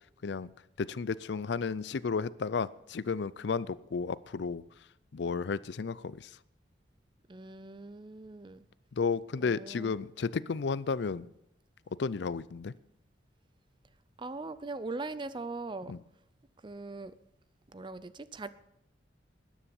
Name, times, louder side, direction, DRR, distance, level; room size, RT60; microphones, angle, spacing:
voice 1, 0.8-4.6 5.1-6.3 9.0-11.3 12.0-12.7 15.9-16.0, left 5 dB, 65° left, 19 dB, 0.4 m, -33 dB
voice 2, 7.3-8.7 9.4-9.9 14.2-15.9 16.6-17.1 17.7-18.5, right 3 dB, 25° right, 15 dB, 0.5 m, -40 dB
13.0 x 9.8 x 7.0 m, 0.81 s
head